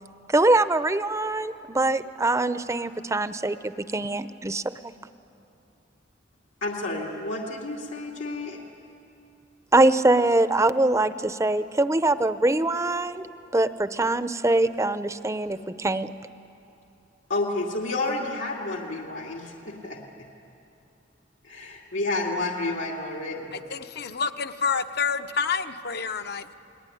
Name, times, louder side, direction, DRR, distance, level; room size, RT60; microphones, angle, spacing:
voice 1, 0.3-4.9 9.7-13.3 13.5-16.1, right 2 dB, 15° right, 12 dB, 0.6 m, -23 dB
voice 2, 6.6-8.6 17.3-20.0 21.4-23.6, left 2 dB, 85° left, -1 dB, 2.6 m, -30 dB
voice 3, 23.7-26.5, left 5 dB, 60° left, 8 dB, 0.9 m, -28 dB
29.5 x 20.5 x 10.0 m, 2.8 s
head